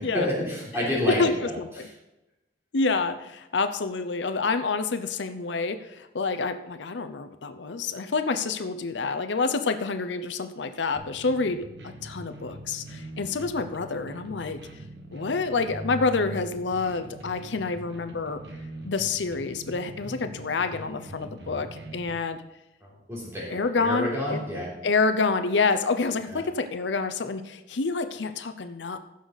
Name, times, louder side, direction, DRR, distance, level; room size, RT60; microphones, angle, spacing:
voice 1, 0.0-1.2 1.4-1.9 22.8-24.7 26.3-26.4, left 1 dB, 15° right, -5 dB, 3.5 m, -29 dB
voice 2, 1.1-1.9 2.7-14.6 15.1-18.4 18.8-22.4 23.5-24.4 24.8-29.0, left 4 dB, 80° left, 9 dB, 0.7 m, -28 dB
sound 1, 10.9-22.1, right 1 dB, 70° right, 1.4 m, -42 dB
15.5 x 6.5 x 4.0 m, 0.94 s
head